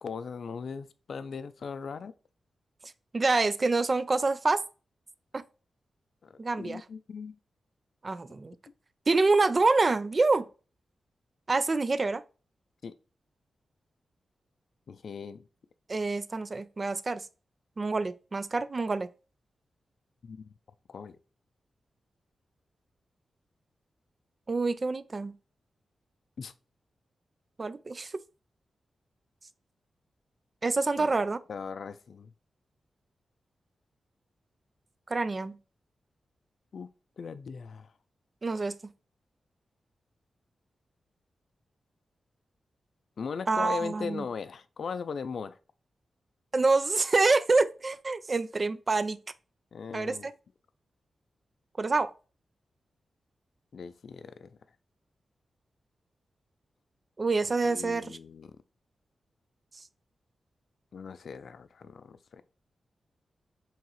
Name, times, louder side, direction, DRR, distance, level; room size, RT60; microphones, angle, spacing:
voice 1, 0.0-2.1 6.2-7.4 12.8-12.9 14.9-15.4 20.2-20.4 20.9-21.2 26.4-26.5 31.0-31.1 31.5-32.3 36.7-36.9 37.2-37.9 43.2-45.6 49.7-50.3 53.7-54.6 57.6-58.5 60.9-62.4, left 5 dB, 70° left, 0.4 m, -39 dB
voice 2, 3.1-4.6 5.3-5.4 6.4-6.8 8.0-8.6 9.1-10.5 11.5-12.2 15.9-17.3 17.8-19.1 24.5-25.4 27.6-28.2 30.6-31.4 35.1-35.6 38.4-38.9 43.5-44.3 46.5-49.2 49.9-50.3 51.8-52.1 57.2-58.2, right 3 dB, 40° right, 0.4 m, -26 dB
4.7 x 3.1 x 3.1 m
cardioid pair, 80°, 0 cm